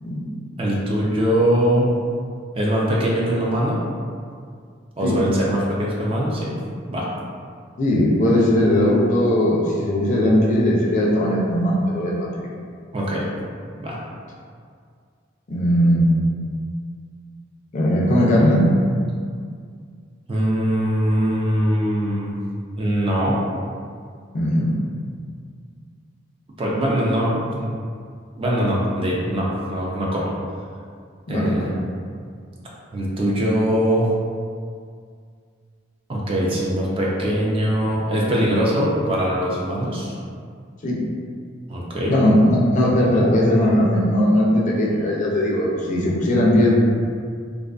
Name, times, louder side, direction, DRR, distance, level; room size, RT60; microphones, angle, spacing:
voice 1, 0.0-0.4 5.0-5.2 7.8-12.5 15.5-16.2 17.7-18.7 24.3-24.8 31.3-31.8 40.8-41.0 42.1-46.7, left 1 dB, 40° left, -4 dB, 0.4 m, -19 dB
voice 2, 0.6-1.9 2.5-3.8 5.0-6.5 6.9-7.1 12.9-13.2 13.8-14.0 20.3-22.4 22.8-23.4 26.6-27.8 28.4-30.3 31.3-31.7 32.9-34.1 36.1-40.1 41.7-42.1, equal, 30° right, -4 dB, 0.4 m, -22 dB
2.4 x 2.4 x 2.3 m, 2.1 s
head